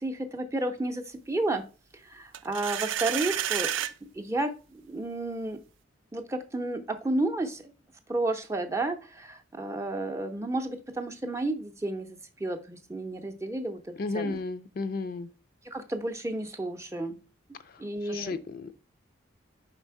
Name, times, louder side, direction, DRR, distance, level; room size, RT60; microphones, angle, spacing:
voice 1, 0.0-1.6 1.9-3.7 4.0-5.6 6.1-7.7 8.1-14.4 15.6-17.2 17.8-18.4, right 2 dB, 15° right, 0.6 m, -32 dB
sound 1, 2.3-3.9, right 11 dB, 75° right, 0.4 m, -30 dB
voice 2, 14.0-15.3 17.7-18.7, left 3 dB, 45° left, 0.3 m, -34 dB
5.2 x 4.2 x 4.6 m
head